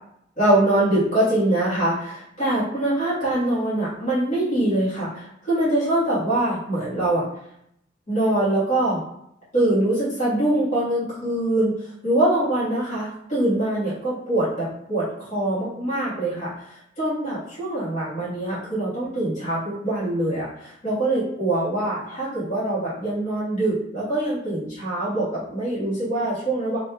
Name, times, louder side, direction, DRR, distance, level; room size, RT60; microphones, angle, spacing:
voice 1, 0.4-7.2 8.1-9.0 9.5-11.7 12.0-16.5 17.0-26.8, right 1 dB, 40° left, -12 dB, 1.3 m, -23 dB
2.9 x 2.6 x 2.3 m, 0.76 s
head